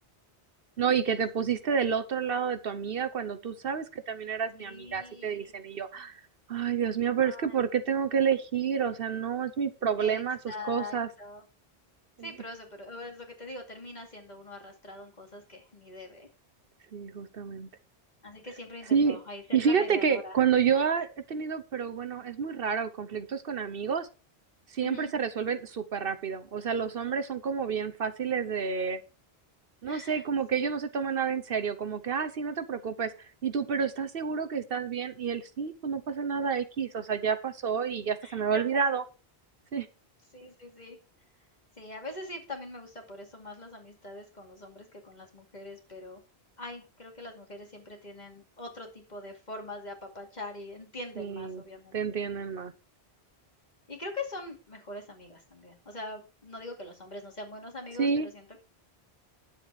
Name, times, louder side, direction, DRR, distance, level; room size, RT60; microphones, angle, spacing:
voice 1, 0.8-6.2 6.5-11.1 12.2-12.3 16.9-17.7 18.9-19.2 19.5-24.1 24.7-29.0 29.8-39.0 39.7-39.9 51.2-51.6 51.9-52.7 58.0-58.3, right 6 dB, 65° right, 10 dB, 1.0 m, -29 dB
voice 2, 4.6-5.5 7.2-7.6 10.0-11.5 12.2-16.3 18.2-20.4 24.8-25.1 29.9-30.2 30.5-30.7 38.2-39.0 40.3-41.0 41.8-46.2 46.6-52.2 53.9-58.6, left 2 dB, 45° left, 2 dB, 2.6 m, -43 dB
9.8 x 7.7 x 4.7 m, 0.31 s
omnidirectional pair, 1.1 m